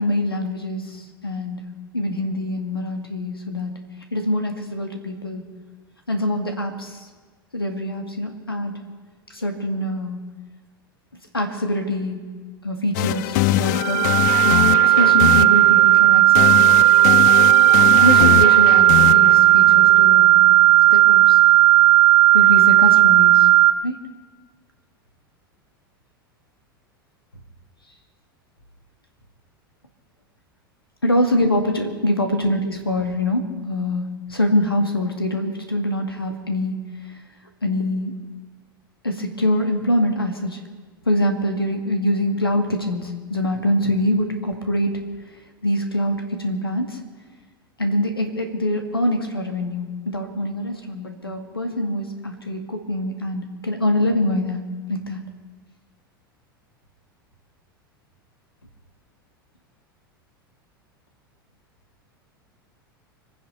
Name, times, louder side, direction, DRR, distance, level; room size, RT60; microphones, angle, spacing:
voice 1, 0.0-1.7 1.9-3.7 4.1-5.5 6.1-7.0 7.5-8.7 9.3-10.2 11.3-12.3 12.6-14.1 14.4-16.7 18.0-20.4 20.9-21.4 22.3-23.5 23.8-24.0 31.0-36.9 37.6-38.2 39.0-40.6 41.1-44.9 45.6-47.0 47.8-54.6 54.9-55.2, left 1 dB, 85° left, 4 dB, 2.1 m, -24 dB
sound 1, 12.9-20.9, left 16 dB, 50° left, 0.4 m, -23 dB
sound 2, 13.8-23.7, right 15 dB, 45° right, 0.7 m, -13 dB
25.0 x 9.5 x 5.5 m, 1.4 s
figure-of-eight pair, 85°, 12 cm